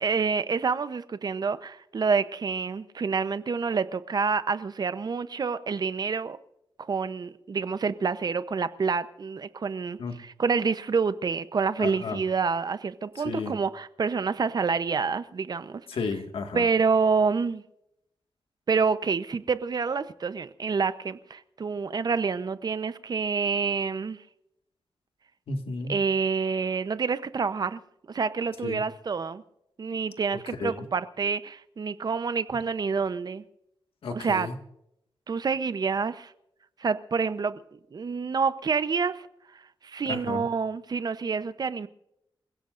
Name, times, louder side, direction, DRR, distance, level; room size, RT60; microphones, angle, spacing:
voice 1, 0.0-6.4 6.9-15.8 16.5-17.6 18.7-24.2 25.9-27.8 28.1-29.4 29.8-33.4 34.1-34.5 35.3-36.3 36.8-37.6 37.9-39.3 39.8-41.9, right 5 dB, 45° right, 0.8 m, -27 dB
voice 2, 11.8-12.2 13.3-13.5 15.9-16.7 25.5-26.0 28.6-28.8 30.6-30.7 34.0-34.6 40.1-40.5, left 4 dB, 80° left, 1.9 m, -32 dB
28.0 x 16.5 x 2.6 m
wide cardioid pair, 115°, 9 cm